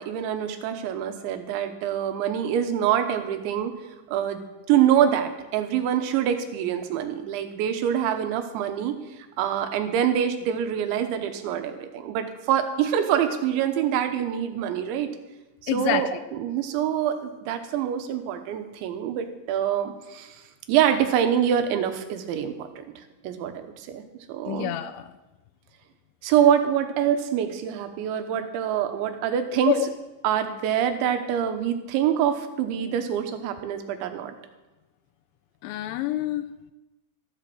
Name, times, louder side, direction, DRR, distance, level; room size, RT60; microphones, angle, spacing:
voice 1, 0.0-3.7 4.1-4.4 4.7-9.0 9.4-15.1 15.6-20.4 20.7-22.8 23.2-24.0 24.3-24.7 26.2-29.8 30.2-34.3, right 9 dB, 80° right, 7 dB, 3.3 m, -25 dB
voice 2, 15.7-16.1 24.5-25.1 29.7-29.9 35.6-36.4, left 13 dB, 85° left, 8 dB, 2.9 m, -26 dB
13.5 x 7.6 x 7.7 m, 1.1 s
omnidirectional pair, 5.3 m